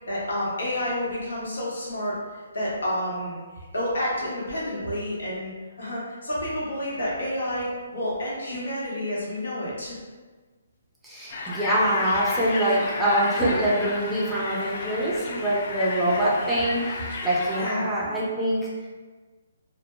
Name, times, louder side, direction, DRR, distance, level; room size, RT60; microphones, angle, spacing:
voice 1, 0.1-2.2 2.5-3.4 3.7-5.5 5.8-10.0 17.6-18.1, left 1 dB, 80° left, -6 dB, 0.9 m, -29 dB
voice 2, 11.0-18.9, right 1 dB, 5° right, -8 dB, 0.5 m, -24 dB
sound 1, 11.3-17.7, left 3 dB, 50° left, 0.3 m, -32 dB
2.1 x 2.1 x 3.0 m, 1.3 s
hypercardioid pair, 140°, 0 cm